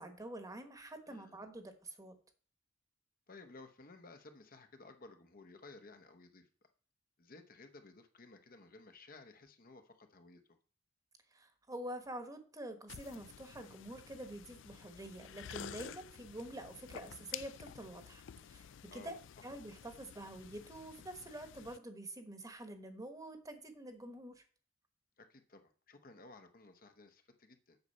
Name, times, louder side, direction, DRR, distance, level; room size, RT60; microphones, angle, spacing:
voice 1, 0.0-2.2 11.3-19.2 19.4-24.4, right 1 dB, 20° right, 7 dB, 1.2 m, -47 dB
voice 2, 1.1-1.4 3.3-6.5 7.2-10.4 18.9-19.5 25.2-27.8, left 3 dB, 45° left, 6 dB, 0.9 m, -56 dB
sound 1, 12.9-21.8, left 9 dB, 65° left, 0.4 m, -51 dB
8.1 x 6.7 x 5.5 m, 0.42 s
head